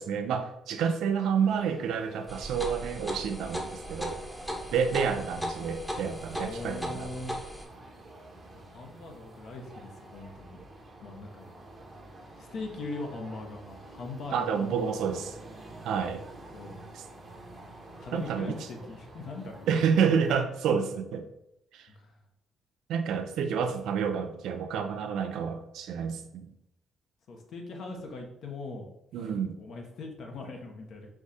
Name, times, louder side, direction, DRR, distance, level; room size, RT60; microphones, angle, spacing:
voice 1, 0.0-4.2 4.7-7.1 14.3-15.3 15.8-16.2 18.1-18.5 19.7-21.3 21.7-21.9 22.9-26.5 29.1-29.5, right 7 dB, 85° right, 7 dB, 0.5 m, -29 dB
sound 1, 1.3-20.3, right 2 dB, 40° right, 1.0 m, -49 dB
sound 2, 2.3-7.6, equal, 5° left, 0.9 m, -37 dB
voice 2, 6.4-7.3 8.5-10.6 11.0-11.5 12.4-15.2 16.5-16.9 18.0-19.8 21.9-22.2 27.3-28.9 29.1-31.1, left 3 dB, 65° left, 1 dB, 0.9 m, -41 dB
4.7 x 2.4 x 4.1 m, 0.82 s
cardioid pair, 90°, 0 cm